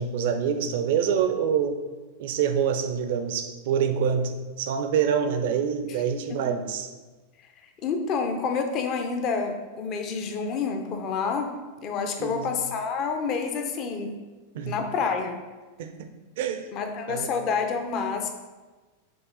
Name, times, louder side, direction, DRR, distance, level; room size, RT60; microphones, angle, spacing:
voice 1, 0.0-1.8 2.2-6.9 12.2-12.5 14.5-14.8 15.8-16.7 17.1-17.3, right 7 dB, 55° right, 8 dB, 0.5 m, -26 dB
voice 2, 7.8-11.6 11.8-14.1 14.7-15.4 16.7-18.3, left 5 dB, 35° left, 5 dB, 0.7 m, -28 dB
6.8 x 3.5 x 4.0 m, 1.3 s
figure-of-eight pair, 90°, 0 cm